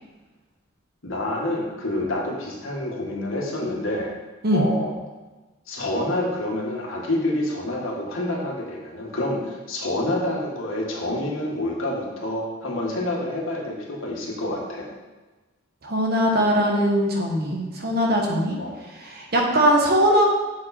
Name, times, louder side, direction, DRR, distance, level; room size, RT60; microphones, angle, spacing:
voice 1, 1.0-4.1 4.5-4.9 5.7-14.9 18.6-18.8, left 1 dB, 75° left, -2 dB, 1.9 m, -28 dB
voice 2, 15.8-18.6 18.9-20.2, equal, 50° right, 0 dB, 1.4 m, -21 dB
7.4 x 6.1 x 4.4 m, 1.2 s
head